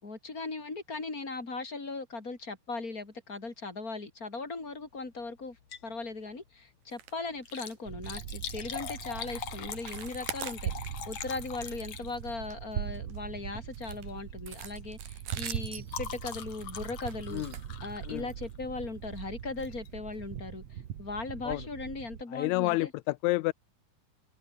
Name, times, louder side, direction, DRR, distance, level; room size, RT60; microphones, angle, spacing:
voice 1, 0.0-5.6 5.8-17.4 17.8-22.9, left 3 dB, 25° left, 4.4 m, -38 dB
Liquid, 5.5-6.0 6.3-6.4 7.3-12.5 13.4-13.7 14.1-14.3 14.6-18.7 19.6-19.9 20.4-20.5 20.7-20.8, left 8 dB, 55° left, 3.1 m, -43 dB
sound 1, 6.9-7.2 7.4-7.8 8.0-8.2 8.7-8.8 9.2-9.4 9.7-11.1 11.5-11.7 12.1-13.2 13.7-18.3 19.1-19.2 19.6-19.7 20.1-20.2, right 11 dB, 80° right, 3.5 m, -45 dB
sound 2, 7.9-22.2, right 10 dB, 55° right, 2.3 m, -41 dB
voice 2, 22.3-23.5, left 19 dB, 90° left, 1.6 m, -29 dB
open air
omnidirectional pair, 3.9 m